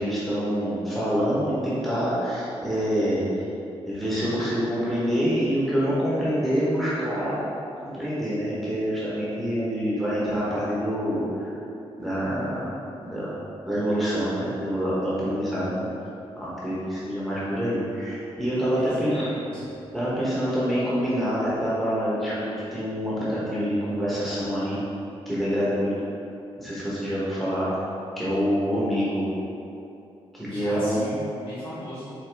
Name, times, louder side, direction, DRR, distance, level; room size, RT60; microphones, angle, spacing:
voice 1, 0.0-3.3 3.9-7.4 7.8-11.5 12.0-13.3 13.6-15.9 16.4-19.3 19.9-24.8 25.2-25.9 26.6-27.7 28.1-29.3 30.3-31.0, equal, ahead, -10 dB, 1.3 m, -26 dB
voice 2, 18.7-19.7 30.5-32.1, equal, 55° left, -11 dB, 1.3 m, -38 dB
7.4 x 3.7 x 3.5 m, 2.8 s
wide cardioid pair, 175°, 11 cm